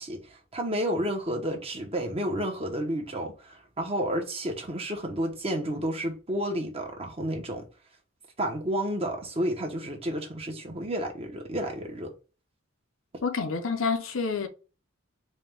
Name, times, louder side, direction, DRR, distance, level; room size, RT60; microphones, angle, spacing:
voice 1, 0.0-7.7 8.4-12.1, equal, 30° right, 0.9 m, -31 dB
voice 2, 13.2-14.5, left 5 dB, 70° left, 0.7 m, -28 dB
4.2 x 2.3 x 3.4 m
head